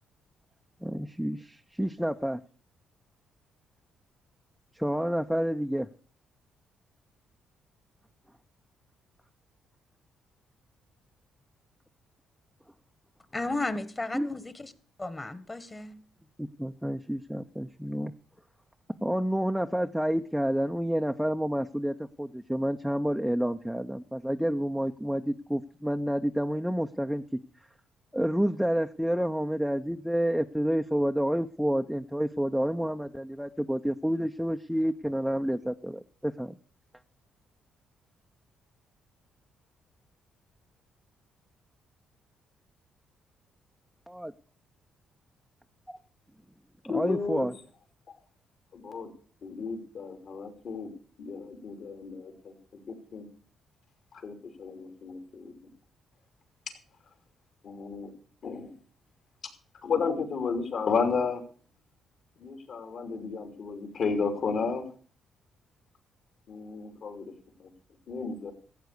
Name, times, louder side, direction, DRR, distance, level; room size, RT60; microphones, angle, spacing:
voice 1, 0.8-2.4 4.7-5.9 14.1-14.3 16.4-18.1 19.0-27.2 28.1-36.5 44.1-44.3 45.9-46.0 46.9-47.5, equal, ahead, 0.6 m, -29 dB
voice 2, 13.3-14.7 15.0-16.0, left 2 dB, 20° left, 1.4 m, -34 dB
voice 3, 46.9-47.5 48.7-49.1 49.4-50.9 51.2-52.5 52.9-53.3 54.1-55.5 57.6-58.1 58.4-58.7 59.8-61.4 62.4-64.9 66.5-67.3 67.6-67.7 68.1-68.5, left 5 dB, 60° left, 2.9 m, -32 dB
14.0 x 8.1 x 6.6 m
cardioid pair, 90°, 0 cm